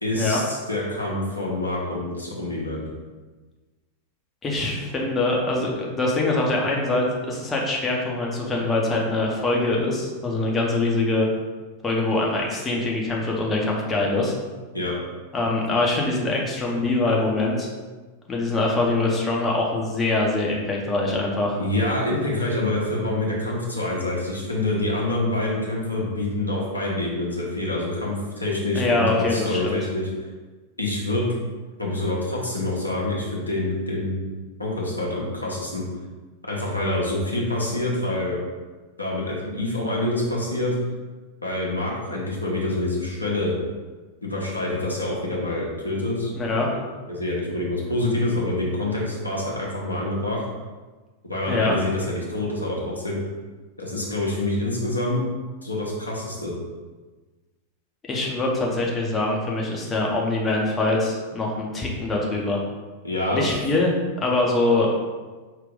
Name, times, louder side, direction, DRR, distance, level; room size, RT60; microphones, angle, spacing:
voice 1, 0.0-2.8 14.7-14.9 21.5-30.1 30.8-31.2 31.8-34.2 34.6-35.8 36.4-38.4 39.0-40.7 41.4-43.5 44.2-46.3 46.7-46.8 47.1-50.4 51.2-53.2 53.8-55.3 55.6-56.5 63.0-63.5, left 1 dB, 80° left, -4 dB, 1.0 m, -26 dB
voice 2, 4.4-11.3 11.8-14.4 15.3-17.7 18.3-21.6 28.7-29.8 46.3-46.7 51.5-51.7 58.1-62.6 63.3-63.9 64.2-64.9, left 2 dB, 20° left, -1 dB, 0.9 m, -23 dB
4.8 x 2.8 x 3.6 m, 1.3 s
figure-of-eight pair, 90°, 0 cm